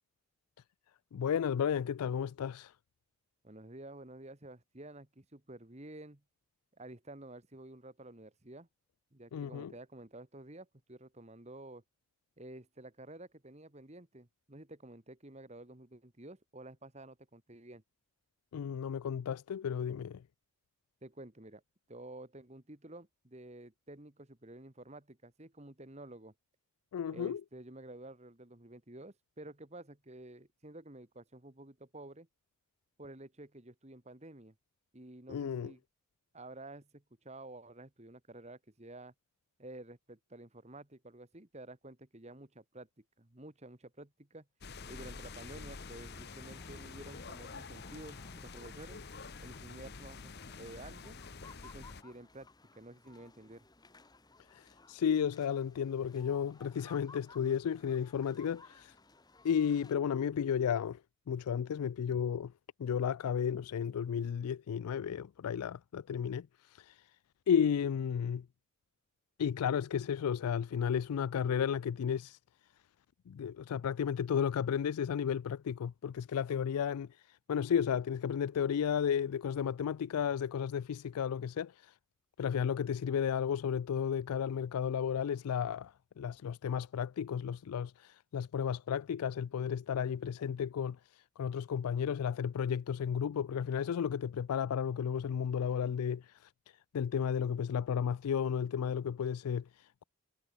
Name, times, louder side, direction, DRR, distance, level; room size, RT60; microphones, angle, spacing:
voice 1, 1.1-2.7 9.3-9.7 18.5-20.2 26.9-27.4 35.3-35.7 54.5-58.9 59.4-61.0 61.3-62.5 62.8-67.1 67.5-68.5 69.4-72.4 73.3-81.9 82.4-96.5 96.9-100.0, left 8 dB, 85° left, 0.4 m, -33 dB
voice 2, 3.4-6.2 6.8-8.7 9.1-11.8 12.4-17.8 21.0-21.6 21.9-26.3 27.1-32.3 33.0-34.5 34.9-35.8 36.3-39.1 39.6-42.9 43.2-44.4 44.9-49.0 49.4-50.3 50.6-51.2 51.6-52.5 52.7-53.6, right 1 dB, 30° right, 1.7 m, -51 dB
sound 1, 44.6-52.0, left 4 dB, 45° left, 0.9 m, -48 dB
sound 2, 44.8-59.9, left 3 dB, 15° left, 1.3 m, -59 dB
head